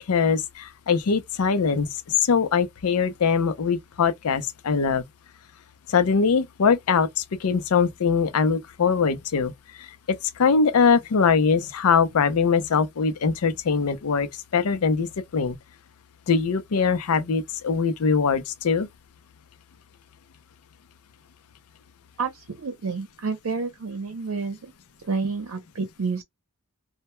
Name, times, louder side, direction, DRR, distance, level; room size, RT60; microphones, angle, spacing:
voice 1, 0.1-5.0 5.9-9.5 9.8-14.3 14.5-15.6 16.3-18.9, left 5 dB, 80° left, 0.5 m, -22 dB
voice 2, 22.2-24.7 25.0-26.2, right 4 dB, 70° right, 0.6 m, -29 dB
2.1 x 2.1 x 2.9 m
head